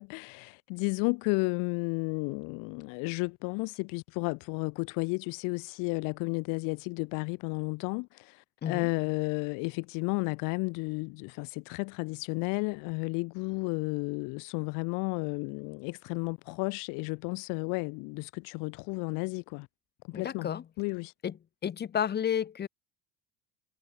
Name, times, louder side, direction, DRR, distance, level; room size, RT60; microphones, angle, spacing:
voice 1, 0.0-19.7 20.1-20.5 20.8-21.1, left 31 dB, 70° left, 2.2 m, -33 dB
voice 2, 20.1-20.6 21.2-21.4 21.6-22.7, left 8 dB, 30° left, 2.1 m, -31 dB
cardioid pair, 135°, 34 cm